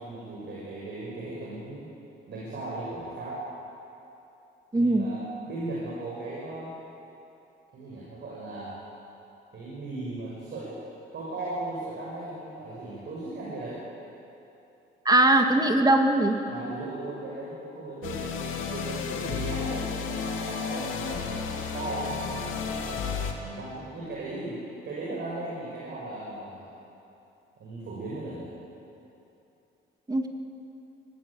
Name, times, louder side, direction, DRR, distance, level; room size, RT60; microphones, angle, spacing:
voice 1, 0.0-1.9 2.3-3.4 4.7-6.7 7.7-8.8 9.5-10.7 11.1-13.8 16.5-24.6 24.8-26.7 27.6-28.5, right 2 dB, 60° right, -5 dB, 6.7 m, -37 dB
voice 2, 4.7-5.1 15.0-16.4 30.1-30.3, right 1 dB, 20° right, 4 dB, 2.4 m, -20 dB
sound 1, 18.0-23.3, left 6 dB, 80° left, 2.5 m, -32 dB
24.5 x 18.0 x 8.8 m, 2.9 s
cardioid pair, 90°, 20 cm